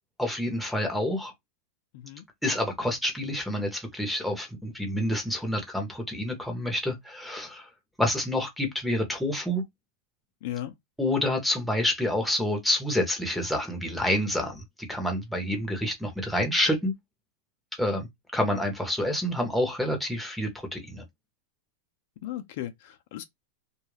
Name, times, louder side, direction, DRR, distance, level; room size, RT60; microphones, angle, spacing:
voice 1, 0.2-1.3 2.4-7.7 8.0-9.6 11.0-14.6 14.9-16.9 17.8-21.0, left 1 dB, ahead, 0.8 m, -28 dB
voice 2, 1.9-2.3 10.4-10.7 22.2-23.2, left 13 dB, 60° left, 0.4 m, -36 dB
2.3 x 2.1 x 3.1 m
supercardioid pair, 140°, 0 cm